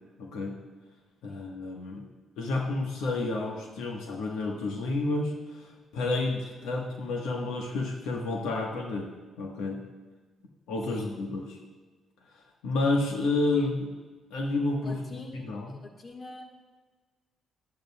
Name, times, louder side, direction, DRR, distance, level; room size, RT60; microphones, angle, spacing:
voice 1, 0.2-0.5 1.2-2.0 2.4-9.1 9.4-9.8 10.7-11.6 12.6-13.9 14.3-15.7, left 2 dB, 85° left, 0 dB, 1.2 m, -30 dB
voice 2, 14.8-16.5, left 2 dB, 45° left, 3 dB, 1.5 m, -45 dB
12.0 x 10.5 x 2.3 m, 1.3 s
supercardioid pair, 60°, 0 cm